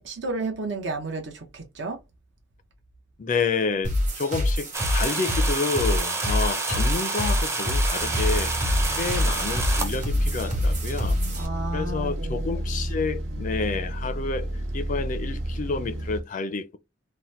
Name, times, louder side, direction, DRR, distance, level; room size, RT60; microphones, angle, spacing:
voice 1, 0.0-2.0 11.3-12.5, right 3 dB, 70° right, 0.7 m, -32 dB
voice 2, 3.2-8.6 9.0-11.2 11.7-16.8, left 4 dB, 45° left, 0.4 m, -29 dB
sound 1, 3.8-11.5, left 1 dB, 40° right, 1.2 m, -26 dB
sound 2, 4.7-9.9, right 3 dB, 15° right, 0.5 m, -29 dB
sound 3, 8.0-16.2, right 1 dB, 90° right, 1.0 m, -31 dB
2.8 x 2.1 x 3.0 m
head